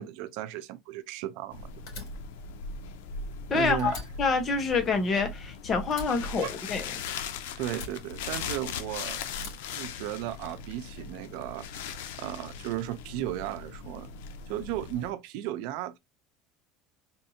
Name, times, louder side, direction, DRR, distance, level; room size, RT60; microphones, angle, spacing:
voice 1, 0.0-1.7 3.5-3.9 6.4-6.5 7.6-9.2 9.7-14.1 14.5-16.0, right 13 dB, 70° right, 0.6 m, -35 dB
sound 1, 1.5-15.1, left 5 dB, 90° left, 0.6 m, -39 dB
Fire, 1.9-3.5 3.8-5.5 5.9-7.2 7.7-8.8 9.3-10.5, left 3 dB, 65° left, 2.9 m, -45 dB
voice 2, 3.5-6.8, left 4 dB, 30° left, 1.0 m, -27 dB
4.3 x 2.7 x 2.7 m
supercardioid pair, 135°, 0 cm